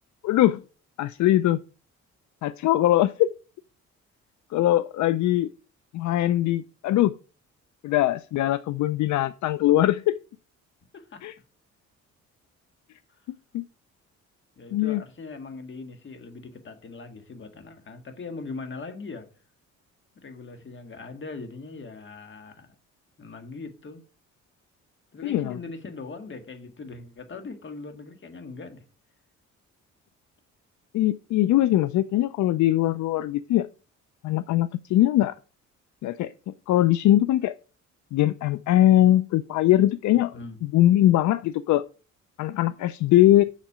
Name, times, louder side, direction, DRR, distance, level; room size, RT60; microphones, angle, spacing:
voice 1, 0.2-0.6 1.0-1.6 2.4-3.3 4.5-5.5 5.9-7.1 7.8-10.1 11.2-11.3 13.5-13.6 14.7-15.0 25.2-25.6 30.9-33.7 34.2-35.3 36.0-36.3 36.7-37.5 38.1-40.3 40.6-41.8 42.4-43.4, left 14 dB, 70° left, 0.5 m, -21 dB
voice 2, 14.6-19.3 20.2-22.8 23.2-24.0 25.1-28.8 40.3-40.6 43.3-43.4, left 3 dB, 40° left, 1.7 m, -40 dB
7.3 x 6.4 x 4.9 m
cardioid pair, 90°, 30 cm